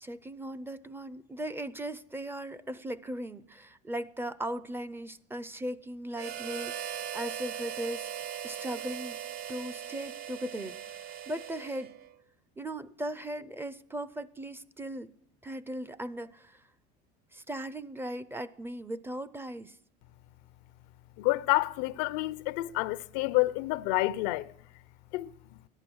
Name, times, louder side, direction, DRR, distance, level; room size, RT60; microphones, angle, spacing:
voice 1, 0.0-8.1 8.4-9.2 9.5-10.8 11.0-11.9 12.6-15.1 15.4-16.6 17.3-19.8, right 1 dB, 10° right, 0.5 m, -38 dB
Harmonica, 6.1-12.2, right 9 dB, 50° right, 0.6 m, -39 dB
voice 2, 21.2-24.5 25.1-25.3, left 19 dB, 85° left, 0.6 m, -28 dB
14.0 x 10.5 x 6.2 m
supercardioid pair, 115°, 21 cm